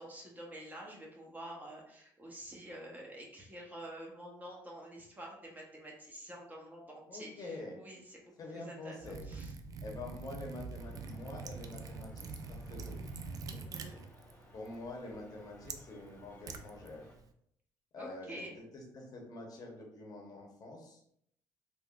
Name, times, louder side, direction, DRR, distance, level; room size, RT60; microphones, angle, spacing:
voice 1, 0.0-9.0 9.2-9.5 13.5-14.0 18.0-18.5, right 1 dB, 20° right, -2 dB, 0.8 m, -48 dB
voice 2, 7.1-7.8 8.4-9.2 9.8-13.0 14.5-17.1 17.9-21.0, left 2 dB, 45° left, 0 dB, 0.8 m, -46 dB
Liquid, 9.0-17.3, right 4 dB, 45° right, 0.3 m, -45 dB
sound 1, 10.7-17.2, left 1 dB, 20° left, 0.6 m, -61 dB
3.5 x 2.2 x 2.4 m, 0.71 s
cardioid pair, 85°, 9 cm